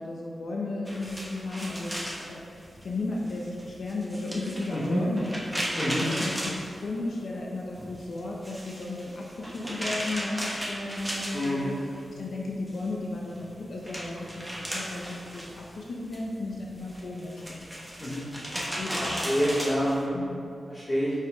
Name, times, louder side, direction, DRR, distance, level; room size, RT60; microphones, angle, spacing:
voice 1, 0.0-2.4 2.8-5.6 5.9-11.8 12.2-17.6 18.5-19.4 20.1-20.5, left 2 dB, 70° left, -2 dB, 0.8 m, -35 dB
sound 1, 0.9-7.4 7.7-12.1 12.4-20.0, equal, 5° right, 1.2 m, -36 dB
voice 2, 4.7-5.0 5.7-6.1 11.3-11.7 18.0-18.2 19.0-20.2 20.7-21.1, equal, 25° left, -8 dB, 1.4 m, -27 dB
5.7 x 5.6 x 4.8 m, 2.5 s
wide cardioid pair, 140°, 0 cm